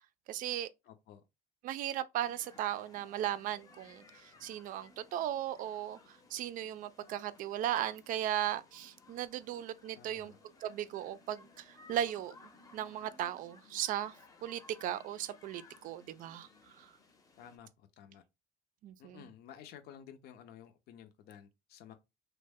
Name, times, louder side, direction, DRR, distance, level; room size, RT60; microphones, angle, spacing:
voice 1, 0.3-0.7 1.6-4.0 4.4-6.0 6.3-10.3 10.6-12.4 12.7-14.1 14.4-16.5 16.8-16.9 18.8-19.2, right 11 dB, 50° right, 0.4 m, -37 dB
voice 2, 0.8-1.2 9.9-10.4 17.4-18.2 19.0-21.9, left 9 dB, 60° left, 0.6 m, -53 dB
sound 1, 2.2-17.6, left 3 dB, 20° left, 0.7 m, -60 dB
3.0 x 2.1 x 3.5 m
cardioid pair, 140°, 18 cm